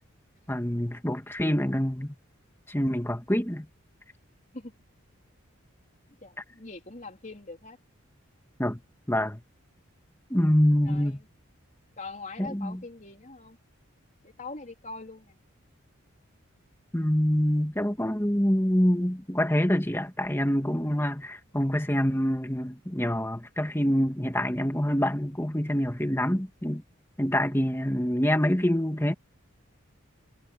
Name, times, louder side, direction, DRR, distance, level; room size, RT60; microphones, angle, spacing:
voice 1, 0.5-2.1 2.7-3.7 8.6-8.8 9.1-9.4 10.3-11.2 12.4-12.8 16.9-26.8 27.2-29.1, equal, 10° left, 1.8 m, -26 dB
voice 2, 6.2-7.8 10.8-11.3 12.0-13.6 14.2-15.4, left 3 dB, 35° left, 3.7 m, -42 dB
head